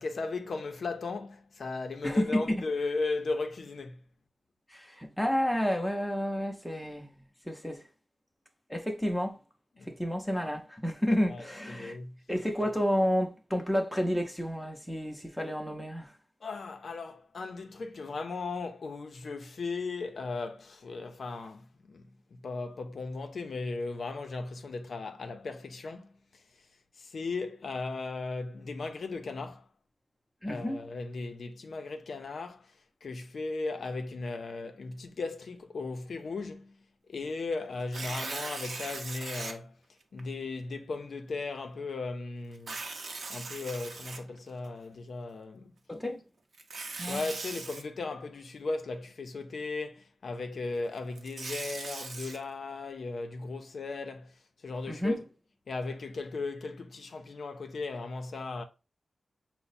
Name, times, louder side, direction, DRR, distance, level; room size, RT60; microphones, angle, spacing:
voice 1, 0.0-4.0 9.8-9.9 11.3-12.2 16.4-26.4 27.0-29.7 30.5-39.8 40.1-42.8 43.3-45.7 47.1-54.4 54.6-55.2 55.7-58.6, left 3 dB, 65° left, 0.5 m, -37 dB
voice 2, 2.0-2.6 4.7-7.8 8.7-9.4 9.9-12.0 12.3-16.2 30.4-30.8 45.9-46.2 47.0-47.2 54.9-55.2, equal, 5° left, 0.6 m, -30 dB
Tearing, 37.8-39.5 40.2-40.3 42.5-44.7 46.5-47.8 51.0-52.4, right 3 dB, 60° right, 0.7 m, -39 dB
5.7 x 2.1 x 4.0 m
wide cardioid pair, 170°, 0 cm